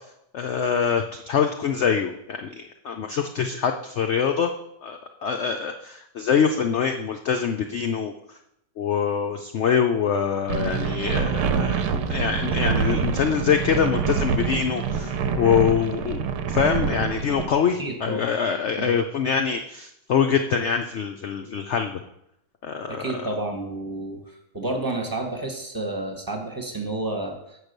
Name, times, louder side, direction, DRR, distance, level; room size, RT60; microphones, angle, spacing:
voice 1, 0.3-4.5 4.8-8.1 8.8-22.0 22.6-23.2, left 7 dB, 75° left, 5 dB, 0.6 m, -24 dB
sound 1, 10.5-17.5, right 6 dB, 85° right, 1.3 m, -26 dB
voice 2, 17.8-18.2 18.8-18.9 22.9-24.2 24.5-27.6, right 2 dB, 15° right, 3 dB, 0.9 m, -30 dB
7.5 x 4.8 x 6.6 m, 0.79 s
omnidirectional pair, 1.8 m